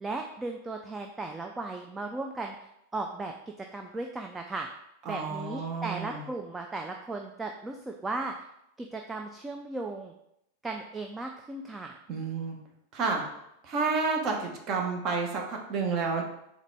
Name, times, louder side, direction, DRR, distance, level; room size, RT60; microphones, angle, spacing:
voice 1, 0.0-2.6 2.9-3.3 3.7-4.7 5.0-8.3 8.8-10.1 10.6-12.0, right 2 dB, 10° right, 3 dB, 0.3 m, -36 dB
voice 2, 5.1-6.2 12.1-12.6 12.9-13.2 13.6-16.2, right 4 dB, 35° right, 1 dB, 0.8 m, -30 dB
3.9 x 3.1 x 3.4 m, 0.80 s
figure-of-eight pair, 90°, 0 cm